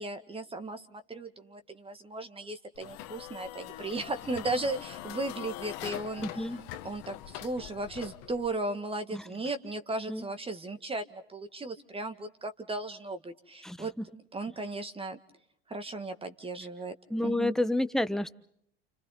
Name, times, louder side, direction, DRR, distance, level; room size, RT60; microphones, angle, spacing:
voice 1, 0.0-6.3 6.8-13.9 14.3-15.2 15.7-16.9 17.2-17.5, right 2 dB, 20° right, 8 dB, 2.0 m, -36 dB
sound 1, 2.8-8.6, left 14 dB, 60° left, 1.6 m, -43 dB
voice 2, 6.2-6.6 9.1-9.2 10.1-10.3 13.6-14.1 17.1-18.3, left 1 dB, ahead, 11 dB, 1.2 m, -30 dB
29.5 x 29.5 x 3.9 m, 0.69 s
hypercardioid pair, 95°, 30 cm